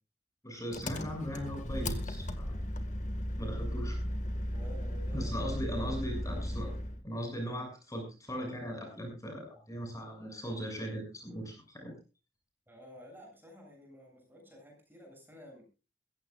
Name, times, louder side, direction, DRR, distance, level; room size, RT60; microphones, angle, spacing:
voice 1, 0.4-2.6 3.4-4.0 5.1-6.7 7.0-12.0, equal, 20° left, 2 dB, 7.0 m, -39 dB
Engine, 0.7-7.0, left 1 dB, 45° left, 1.9 m, -36 dB
voice 2, 4.5-5.3 12.7-15.7, equal, 10° right, 2 dB, 7.8 m, -52 dB
22.0 x 16.0 x 2.5 m, 0.32 s
head